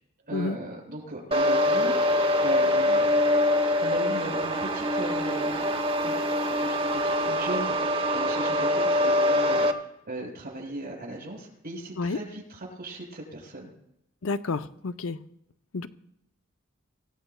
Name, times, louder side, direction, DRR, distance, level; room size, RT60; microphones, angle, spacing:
voice 1, 0.3-3.1 3.8-5.7 6.0-6.1 6.6-7.8 8.1-13.7, right 1 dB, 45° right, -1 dB, 6.0 m, -37 dB
sound 1, 1.3-9.7, left 1 dB, 25° right, 1.1 m, -24 dB
voice 2, 14.2-15.2 15.7-15.9, left 3 dB, 75° left, 11 dB, 0.6 m, -29 dB
25.0 x 16.0 x 2.3 m, 0.81 s
head